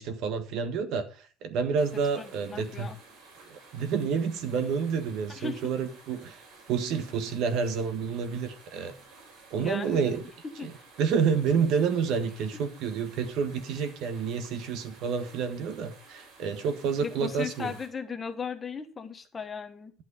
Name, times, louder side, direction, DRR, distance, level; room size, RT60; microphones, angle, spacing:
voice 1, 0.0-2.9 3.5-8.9 9.5-10.2 10.6-10.7 11.0-17.7, right 6 dB, 65° right, 1.5 m, -29 dB
sound 1, 1.8-17.9, right 3 dB, 85° right, 6.0 m, -53 dB
voice 2, 2.1-3.0 5.3-5.6 9.6-10.2 10.4-10.8 12.5-12.6 17.0-19.9, left 5 dB, 20° left, 1.2 m, -37 dB
11.5 x 7.5 x 4.9 m
cardioid pair, 145°, 0 cm